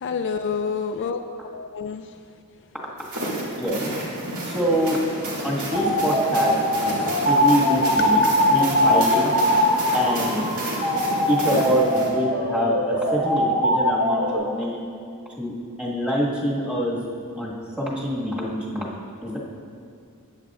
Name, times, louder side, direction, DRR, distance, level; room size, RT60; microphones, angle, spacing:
voice 1, 0.0-2.1, left 5 dB, 55° left, 7 dB, 0.4 m, -28 dB
sound 1, 3.0-12.1, right 1 dB, 90° right, 2.0 m, -31 dB
voice 2, 4.4-5.0 5.4-7.0 7.2-8.2 8.5-9.3 9.9-10.4 11.3-14.8 15.4-15.5 15.8-17.0 17.4-18.9 19.2-19.4, equal, 5° right, -6 dB, 1.7 m, -25 dB
sound 2, 5.7-14.4, equal, 45° right, 1.2 m, -22 dB
13.5 x 9.1 x 2.5 m, 2.3 s
head